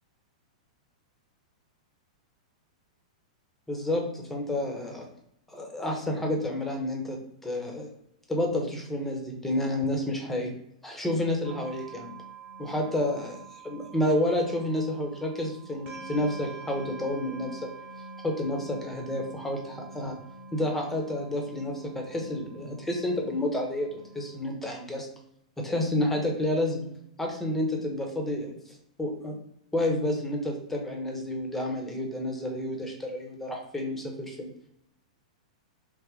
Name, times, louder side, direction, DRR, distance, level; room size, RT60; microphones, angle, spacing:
voice 1, 3.7-5.1 5.5-7.9 8.3-10.5 10.8-12.1 12.6-13.4 13.6-17.7 18.2-20.2 20.5-25.1 25.6-29.4 29.7-34.5, left 1 dB, 5° left, 1 dB, 0.9 m, -30 dB
sound 1, 11.4-24.5, right 3 dB, 35° right, 1.0 m, -46 dB
3.4 x 2.1 x 3.7 m, 0.73 s
hypercardioid pair, 110°, 4 cm